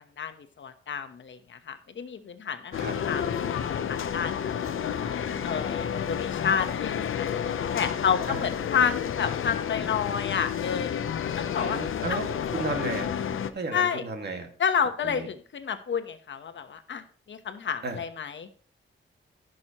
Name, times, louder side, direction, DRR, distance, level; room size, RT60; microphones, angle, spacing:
voice 1, 0.2-4.5 5.4-7.3 7.7-11.1 11.4-11.8 12.1-12.2 13.7-14.0 14.6-18.5, left 7 dB, 65° left, 8 dB, 1.0 m, -30 dB
sound 1, 2.7-13.5, left 8 dB, 80° left, 0.7 m, -30 dB
sound 2, 2.7-7.7, equal, 25° right, 2.9 m, -49 dB
voice 2, 11.6-13.1 13.5-14.5 15.0-15.3 17.8-18.0, right 3 dB, 55° right, 4 dB, 1.9 m, -33 dB
15.5 x 6.3 x 3.0 m, 0.43 s
wide cardioid pair, 110°, 21 cm